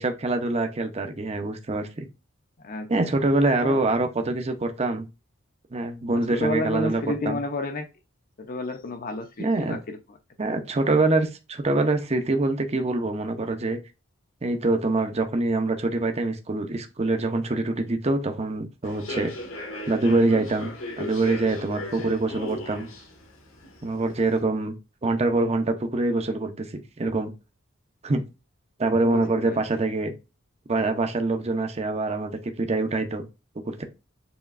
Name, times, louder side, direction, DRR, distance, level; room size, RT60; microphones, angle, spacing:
voice 1, 0.0-2.1 2.9-5.1 5.7-7.4 9.4-9.8 10.4-13.8 14.4-19.3 19.9-22.9 23.8-24.7 25.0-27.3 28.0-28.2 28.8-30.1 30.7-33.3 33.6-33.8, right 2 dB, 30° right, 0.6 m, -25 dB
voice 2, 2.6-3.1 3.5-3.8 6.1-7.9 8.4-10.2 10.5-10.6 29.0-29.6, left 2 dB, 45° left, 0.6 m, -31 dB
Human voice / Subway metro underground, 18.8-24.4, left 1 dB, 85° left, 1.6 m, -37 dB
6.9 x 3.0 x 2.4 m
head